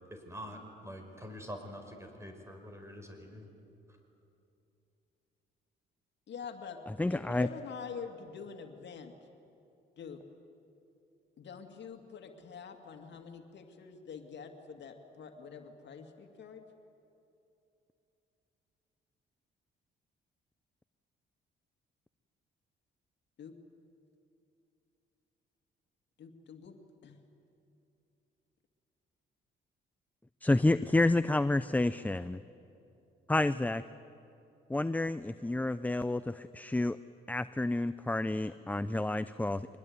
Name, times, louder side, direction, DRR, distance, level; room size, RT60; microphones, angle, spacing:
voice 1, 0.1-3.5, equal, 15° right, 4 dB, 5.2 m, -45 dB
voice 2, 6.3-6.8 7.1-9.2 10.0-10.2 11.4-16.6 23.4-23.5 26.2-26.8 27.0-27.2, left 6 dB, 65° left, 5 dB, 2.3 m, -46 dB
voice 3, 6.9-7.5 30.4-32.4 33.3-33.8 34.7-37.0 37.3-39.7, left 2 dB, 10° left, 13 dB, 0.5 m, -29 dB
24.5 x 20.5 x 9.6 m, 2.8 s
cardioid pair, 90°, 20 cm